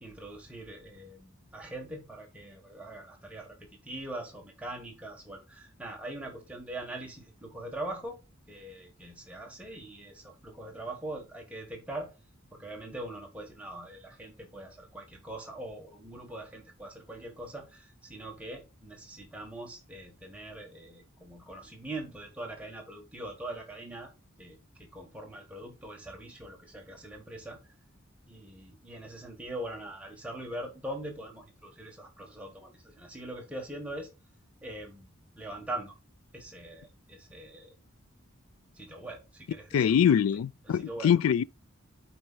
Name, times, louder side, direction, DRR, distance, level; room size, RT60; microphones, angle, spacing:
voice 1, 0.0-8.2 8.5-12.1 12.5-24.1 24.4-27.7 28.3-34.1 34.6-35.9 36.3-37.7 38.7-40.0 40.3-41.1, right 1 dB, 5° right, 1.3 m, -42 dB
voice 2, 39.7-41.4, left 8 dB, 85° left, 0.3 m, -23 dB
12.0 x 4.3 x 2.2 m
head